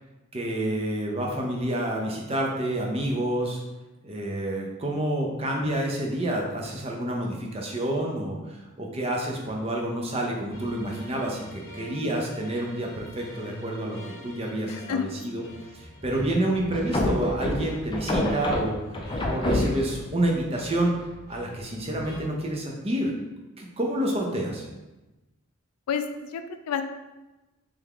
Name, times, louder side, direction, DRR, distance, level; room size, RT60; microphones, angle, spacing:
voice 1, 0.3-3.6 4.0-11.4 11.7-14.0 14.2-15.4 15.7-18.8 19.2-20.9 21.3-23.1 23.6-24.7, right 1 dB, 25° right, 0 dB, 0.5 m, -28 dB
sound 1, 10.5-22.3, left 1 dB, 40° left, 0.9 m, -44 dB
voice 2, 14.7-15.1 15.4-15.5 25.9-26.8, left 7 dB, 90° left, 8 dB, 0.4 m, -30 dB
sound 2, 16.7-20.1, left 1 dB, 20° left, 0.4 m, -27 dB
3.4 x 3.4 x 3.5 m, 1.1 s
head